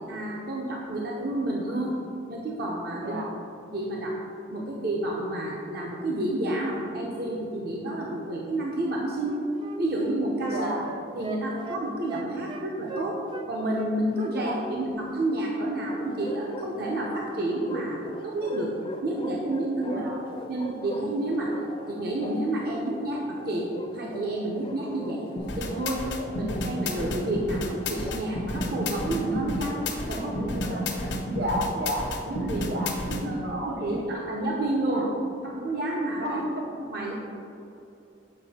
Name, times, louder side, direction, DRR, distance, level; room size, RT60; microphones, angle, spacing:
voice 1, 0.1-2.0 2.3-3.2 3.7-4.2 4.5-9.4 9.8-10.7 11.1-13.2 13.5-18.7 19.0-20.0 20.5-21.5 21.9-25.3 25.6-29.8 30.1-30.3 32.3-32.6 33.0-35.1 35.4-36.2 36.9-37.1, right 1 dB, 60° right, -2 dB, 0.8 m, -30 dB
voice 2, 3.0-3.3 10.5-10.9 14.3-14.6 19.8-20.3 30.1-32.1 32.4-32.9 33.3-34.1 34.8-35.1 36.2-36.7, equal, 75° right, 0 dB, 1.1 m, -33 dB
Wind instrument woodwind instrument, 8.8-13.5 13.7-14.8 15.1-15.3, right 2 dB, 25° right, 0.4 m, -41 dB
Bark, 15.9-31.2, left 1 dB, 30° left, 0.5 m, -42 dB
sound 1, 25.4-33.2, left 1 dB, 85° left, 1.0 m, -31 dB
7.6 x 5.2 x 4.2 m, 2.8 s
head